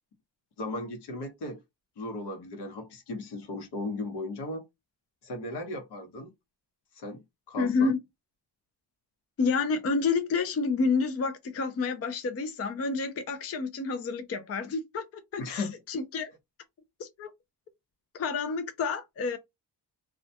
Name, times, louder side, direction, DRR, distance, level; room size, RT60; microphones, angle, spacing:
voice 1, 0.6-1.6 2.0-4.7 5.2-6.3 6.9-7.9 15.4-15.7, left 2 dB, 70° left, 1.0 m, -36 dB
voice 2, 7.6-8.0 9.4-15.0 15.3-16.3 17.0-17.3 18.1-19.4, left 4 dB, 35° left, 0.4 m, -29 dB
2.4 x 2.2 x 2.7 m
wide cardioid pair, 135°, 41 cm